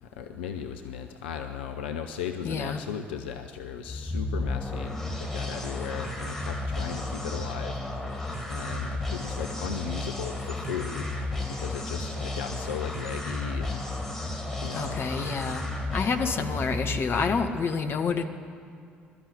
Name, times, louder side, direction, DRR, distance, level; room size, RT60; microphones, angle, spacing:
voice 1, 0.0-7.8 8.4-14.2 14.6-15.0, left 7 dB, 75° left, 5 dB, 0.8 m, -37 dB
voice 2, 2.4-2.8 14.7-15.6 15.9-18.3, left 5 dB, 40° left, 5 dB, 1.8 m, -28 dB
sound 1, 3.8-17.5, left 2 dB, 5° left, 4.0 m, -33 dB
23.5 x 13.0 x 8.8 m, 2.4 s
figure-of-eight pair, 50°, 6 cm